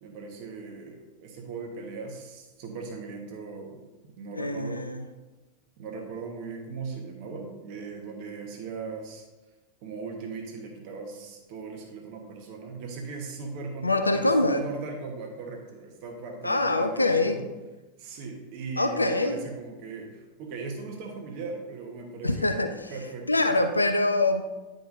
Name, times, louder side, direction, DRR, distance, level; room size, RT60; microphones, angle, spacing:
voice 1, 0.0-3.8 4.2-4.8 5.8-9.2 9.8-17.5 18.0-22.5 22.9-23.5, right 4 dB, 45° right, 2 dB, 1.1 m, -39 dB
voice 2, 4.3-5.0 13.8-14.6 16.4-17.4 18.8-19.4 22.2-22.9 23.3-24.4, left 2 dB, 80° left, 7 dB, 0.4 m, -24 dB
10.0 x 5.0 x 2.6 m, 1.1 s
figure-of-eight pair, 90°, 0 cm